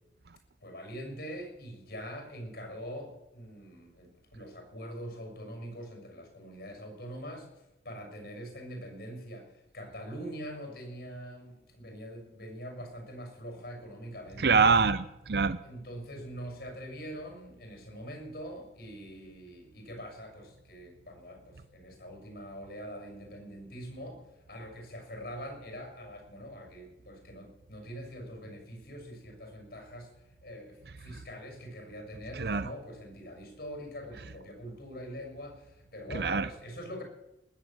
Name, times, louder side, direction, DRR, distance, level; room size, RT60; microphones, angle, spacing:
voice 1, 0.6-7.5 7.8-14.5 15.6-24.2 24.5-37.0, equal, 65° left, 3 dB, 6.7 m, -43 dB
voice 2, 14.4-15.6 32.4-32.7 36.1-36.5, right 4 dB, 60° right, 13 dB, 0.6 m, -25 dB
19.5 x 8.1 x 8.9 m, 0.92 s
head